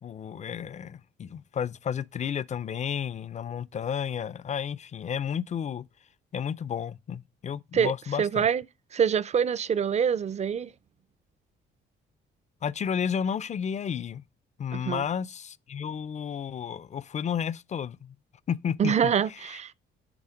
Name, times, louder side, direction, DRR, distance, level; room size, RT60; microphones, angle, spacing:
voice 1, 0.0-5.9 6.3-8.5 12.6-14.2 14.6-18.1 18.5-19.4, left 8 dB, 35° left, 0.4 m, -32 dB
voice 2, 8.2-8.6 8.9-10.7 14.7-15.0 18.8-19.7, right 7 dB, 35° right, 0.4 m, -25 dB
9.8 x 3.5 x 4.9 m
cardioid pair, 90°, 20 cm